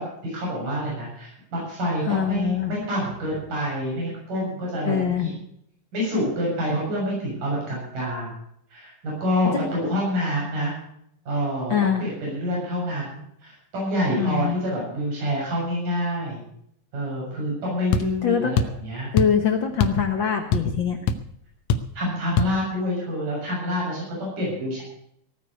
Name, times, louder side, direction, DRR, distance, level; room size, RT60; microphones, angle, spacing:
voice 1, 0.0-5.4 5.9-8.4 8.7-10.7 11.3-16.4 16.9-19.1 21.9-24.8, equal, 80° right, -4 dB, 8.8 m, -27 dB
voice 2, 2.1-2.7 4.8-5.3 9.5-9.7 11.7-12.0 14.2-14.5 18.2-18.6 19.1-21.0, left 7 dB, 50° left, 6 dB, 1.6 m, -23 dB
sound 1, 17.9-18.1 18.6-18.8 19.2-19.4 19.8-20.0 20.3-20.8 21.1-21.2 21.7-21.9 22.4-22.5, left 5 dB, 70° left, 2.0 m, -22 dB
17.5 x 9.4 x 6.6 m, 0.70 s
omnidirectional pair, 3.7 m